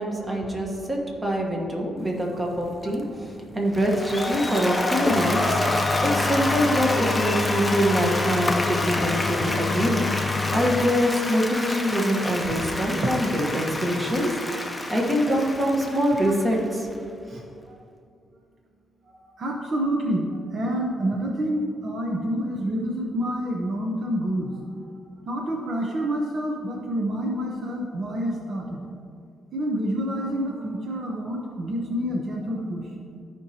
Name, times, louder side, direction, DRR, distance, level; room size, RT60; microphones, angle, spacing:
voice 1, 0.0-5.6 6.0-10.0 10.5-14.3 14.9-16.9, equal, 15° right, 0 dB, 1.3 m, -24 dB
sound 1, 2.0-11.1, left 4 dB, 30° left, 0.3 m, -29 dB
Applause, 3.7-16.9, left 1 dB, 10° left, 0.7 m, -29 dB
voice 2, 17.3-17.8 19.1-24.6 24.9-28.8 29.5-32.9, equal, 45° right, 0 dB, 0.8 m, -28 dB
13.5 x 5.2 x 2.9 m, 2.4 s
cardioid pair, 120°, 0 cm